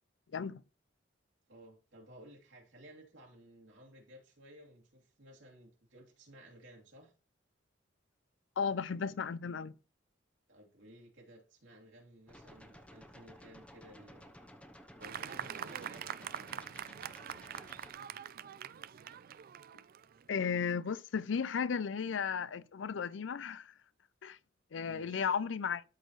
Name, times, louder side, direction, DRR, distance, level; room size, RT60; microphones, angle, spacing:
voice 1, 0.3-0.6 8.6-9.7 20.3-23.7 24.2-24.4 24.7-25.8, left 6 dB, 75° left, 0.4 m, -34 dB
voice 2, 1.5-7.1 10.5-14.3 15.0-16.6 24.9-25.3, right 1 dB, 80° right, 2.8 m, -56 dB
sound 1, 12.3-17.9, equal, 5° left, 0.8 m, -55 dB
Fireworks, 15.0-20.7, right 9 dB, 50° right, 0.4 m, -44 dB
12.5 x 4.4 x 3.1 m
head